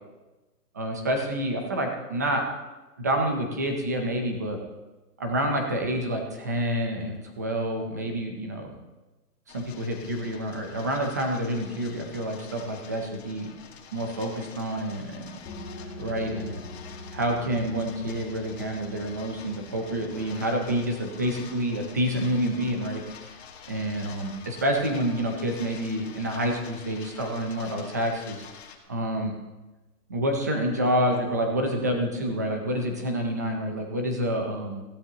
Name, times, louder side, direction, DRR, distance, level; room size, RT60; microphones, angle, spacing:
voice 1, 0.7-2.4 3.0-4.6 5.2-8.7 9.5-13.5 13.9-15.4 16.0-16.7 17.1-23.0 23.7-28.4 28.9-29.3 30.1-34.8, right 1 dB, 10° right, 3 dB, 0.6 m, -28 dB
sound 1, 9.5-28.8, left 7 dB, 40° left, 2.2 m, -47 dB
sound 2, 15.5-26.8, left 1 dB, 15° left, 1.7 m, -46 dB
20.0 x 16.0 x 2.9 m, 1.1 s
hypercardioid pair, 160°, 48 cm